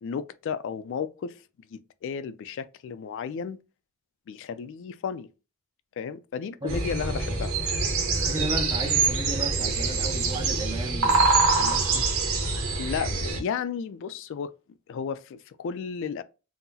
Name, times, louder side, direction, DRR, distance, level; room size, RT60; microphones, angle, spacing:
voice 1, 0.0-1.4 1.7-3.6 4.3-5.3 6.0-7.5 12.8-14.5 14.9-16.2, left 6 dB, 60° left, 0.3 m, -33 dB
sound 1, 6.7-13.4, right 3 dB, 90° right, 0.9 m, -25 dB
voice 2, 8.1-12.1, right 2 dB, 20° right, 0.5 m, -35 dB
3.7 x 2.0 x 2.7 m
head